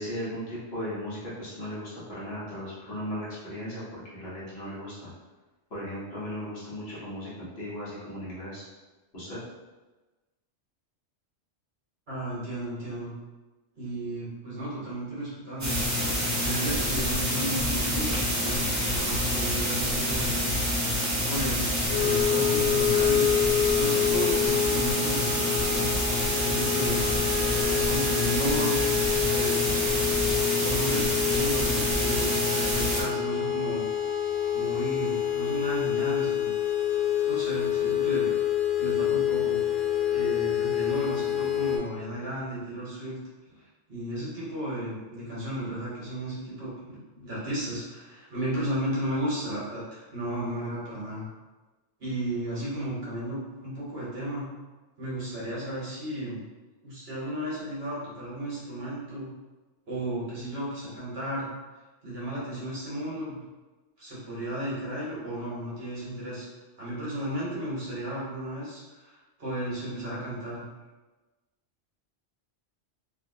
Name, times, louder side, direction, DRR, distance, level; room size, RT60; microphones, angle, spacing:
voice 1, 0.0-3.8 4.1-5.1 5.7-8.6 9.1-9.4, equal, 60° left, -9 dB, 1.4 m, -36 dB
voice 2, 12.1-13.1 13.8-15.8 16.4-20.4 21.3-23.3 23.7-25.9 26.3-27.1 27.5-28.8 29.2-29.9 30.6-33.8 34.5-36.5 37.3-38.3 38.8-39.8 40.1-43.2 43.4-51.3 52.0-54.5 55.0-56.4 56.8-59.3 59.9-61.5 62.0-63.4 64.0-66.5 66.8-70.6, right 1 dB, 60° right, -8 dB, 1.4 m, -34 dB
sound 1, 15.6-33.0, equal, 20° right, 0.5 m, -27 dB
sound 2, 21.9-41.8, left 10 dB, 35° left, 0.4 m, -27 dB
3.0 x 2.8 x 2.7 m, 1.2 s
omnidirectional pair, 1.2 m